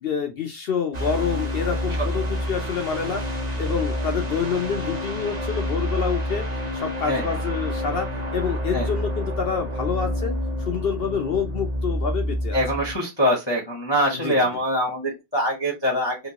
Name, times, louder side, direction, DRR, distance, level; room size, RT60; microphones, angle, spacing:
voice 1, 0.0-3.2 3.6-8.1 8.3-12.6 14.1-14.3, left 6 dB, 65° left, 4 dB, 0.5 m, -27 dB
sound 1, 0.9-13.0, equal, 35° right, 0.8 m, -28 dB
voice 2, 12.5-16.2, equal, 25° left, -2 dB, 0.6 m, -23 dB
2.9 x 2.9 x 2.8 m, 0.22 s
omnidirectional pair, 1.6 m